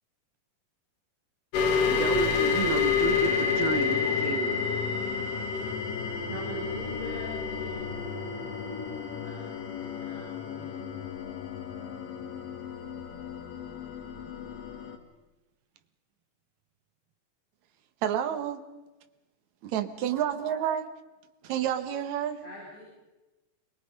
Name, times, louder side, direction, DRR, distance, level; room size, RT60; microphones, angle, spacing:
sound 1, 1.5-15.0, left 6 dB, 75° left, 3.4 m, -30 dB
voice 1, 1.8-4.6, right 8 dB, 85° right, 10 dB, 2.8 m, -32 dB
voice 2, 6.3-7.9 9.1-9.4 9.8-10.8 22.4-22.8, equal, 40° left, -8 dB, 8.7 m, -42 dB
voice 3, 18.0-18.6 19.6-20.9 21.4-22.4, right 10 dB, 65° right, 7 dB, 2.4 m, -29 dB
27.5 x 21.5 x 5.4 m, 1.1 s
omnidirectional pair, 3.9 m